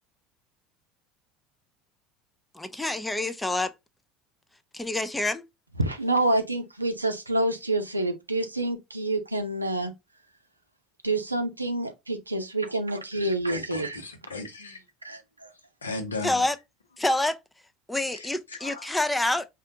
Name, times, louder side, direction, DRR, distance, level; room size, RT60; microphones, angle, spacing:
voice 1, 2.5-3.7 4.7-5.4 16.2-16.6 17.0-17.4 17.9-19.5, left 2 dB, 10° left, 0.5 m, -27 dB
voice 2, 5.8-9.9 11.0-14.0 15.0-15.5, right 2 dB, 85° right, 0.6 m, -27 dB
voice 3, 13.5-14.8 15.8-16.4 18.1-18.9, left 3 dB, 80° left, 0.8 m, -37 dB
4.2 x 2.4 x 2.7 m
figure-of-eight pair, 70°, 0 cm